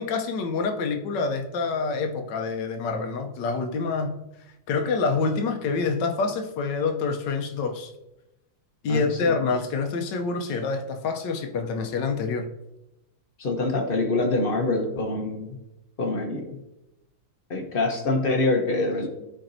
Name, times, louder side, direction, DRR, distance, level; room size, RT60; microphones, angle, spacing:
voice 1, 0.0-4.2 4.7-7.9 8.8-12.5, left 4 dB, 70° left, 1.3 m, -27 dB
voice 2, 8.9-9.3 13.4-15.6 16.0-16.6 17.5-19.1, left 2 dB, 50° left, 0.7 m, -25 dB
12.5 x 4.4 x 2.6 m
omnidirectional pair, 2.1 m